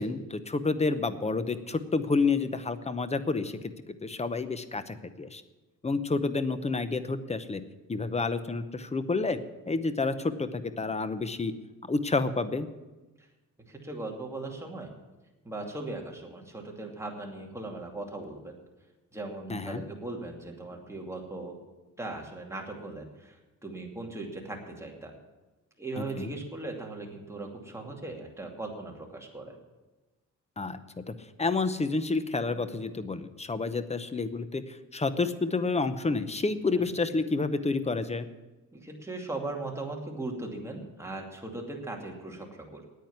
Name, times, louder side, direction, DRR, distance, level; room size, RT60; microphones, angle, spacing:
voice 1, 0.0-3.6 4.0-5.4 5.8-7.6 7.9-9.4 9.7-11.5 11.9-12.7 19.5-19.8 26.0-26.3 30.6-30.8 31.4-38.3, left 3 dB, 20° left, 12 dB, 0.8 m, -29 dB
voice 2, 13.7-14.9 15.4-18.5 19.1-21.6 22.0-25.1 25.8-29.6 36.8-36.9 38.7-42.9, right 2 dB, 10° right, 0 dB, 2.5 m, -39 dB
9.3 x 9.1 x 9.4 m, 1.1 s
cardioid pair, 105°, 33 cm